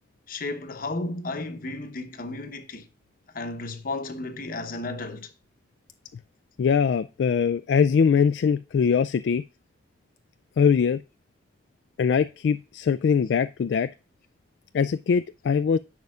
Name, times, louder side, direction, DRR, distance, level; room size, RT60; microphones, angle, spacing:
voice 1, 0.3-2.9 3.3-5.3, left 2 dB, 55° left, 1.0 m, -33 dB
voice 2, 6.6-9.4 10.6-11.0 12.0-13.9 14.7-15.8, left 6 dB, 70° left, 0.3 m, -22 dB
10.5 x 6.8 x 2.4 m
head